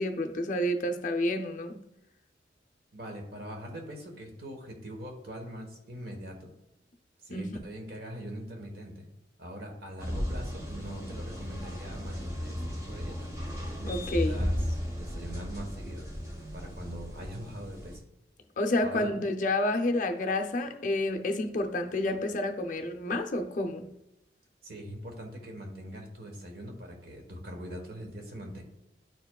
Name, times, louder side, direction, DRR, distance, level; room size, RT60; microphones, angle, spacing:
voice 1, 0.0-1.8 7.3-7.5 13.9-14.4 18.6-23.9, left 1 dB, 45° left, 6 dB, 0.5 m, -29 dB
voice 2, 2.9-6.5 7.2-9.1 9.4-13.3 13.8-13.9 14.2-16.1 16.5-18.1 18.8-19.1 24.6-28.6, equal, 60° right, 2 dB, 1.3 m, -42 dB
sound 1, 10.0-18.0, equal, 20° right, 1.1 m, -35 dB
10.0 x 4.6 x 2.3 m, 0.89 s
head